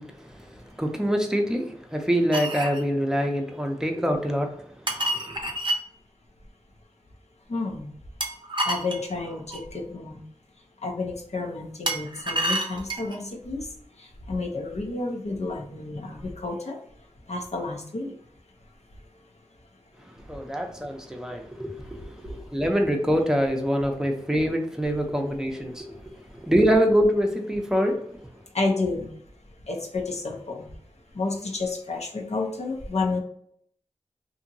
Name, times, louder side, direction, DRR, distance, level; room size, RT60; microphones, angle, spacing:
voice 1, 0.0-5.5 20.0-28.2, equal, 5° right, 0.6 m, -25 dB
sound 1, 2.3-2.8 4.9-5.8 8.2-9.7 11.9-13.2, right 1 dB, 40° right, 0.6 m, -28 dB
voice 2, 7.5-7.9 8.6-10.2 10.8-13.7 14.0-16.8 17.3-18.1 28.5-29.1 29.7-30.7 31.1-33.2, left 3 dB, 60° left, 0.6 m, -30 dB
2.8 x 2.6 x 2.6 m
wide cardioid pair, 40°, 12 cm